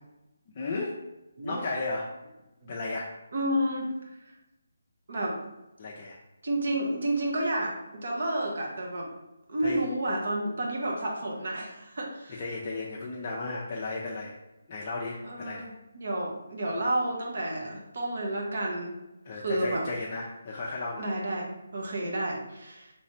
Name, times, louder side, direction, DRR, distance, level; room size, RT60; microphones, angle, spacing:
voice 1, 0.6-1.0 1.4-2.1 2.7-3.1 5.8-6.2 9.6-9.8 12.3-14.4 14.7-15.7 19.3-21.1, left 3 dB, 30° left, -3 dB, 0.5 m, -34 dB
voice 2, 3.3-3.9 5.1-5.4 6.4-9.1 9.5-12.4 15.2-18.9 19.3-19.8 21.0-22.9, right 1 dB, 55° right, -1 dB, 1.1 m, -31 dB
3.2 x 3.1 x 4.2 m, 0.96 s
hypercardioid pair, 165°, 0 cm